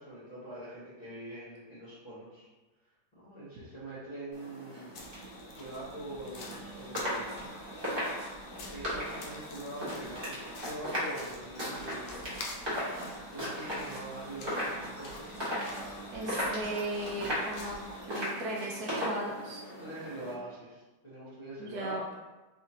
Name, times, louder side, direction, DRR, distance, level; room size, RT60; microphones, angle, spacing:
voice 1, 0.0-2.5 3.1-5.0 5.6-7.5 8.4-12.4 13.3-15.4 19.8-22.1, right 1 dB, 30° left, -10 dB, 1.0 m, -44 dB
sound 1, 4.3-20.3, equal, 15° right, 1.2 m, -37 dB
sound 2, 4.9-18.1, left 3 dB, 80° left, 1.2 m, -49 dB
voice 2, 16.1-17.8 18.0-19.6 21.6-22.1, right 1 dB, 70° right, -2 dB, 1.0 m, -36 dB
4.1 x 2.8 x 2.7 m, 1.2 s
omnidirectional pair, 1.8 m